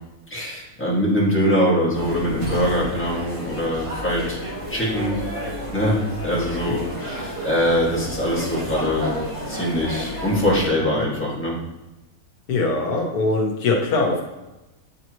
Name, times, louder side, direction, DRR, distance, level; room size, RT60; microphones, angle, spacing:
voice 1, 0.3-4.4 4.7-5.2 5.7-9.2 9.5-11.6, equal, 10° left, -7 dB, 1.7 m, -23 dB
sound 1, 1.9-10.7, equal, 35° right, 1.7 m, -31 dB
voice 2, 12.5-14.2, left 3 dB, 85° left, 1 dB, 1.4 m, -22 dB
8.2 x 3.8 x 3.0 m, 1.0 s
omnidirectional pair, 1.6 m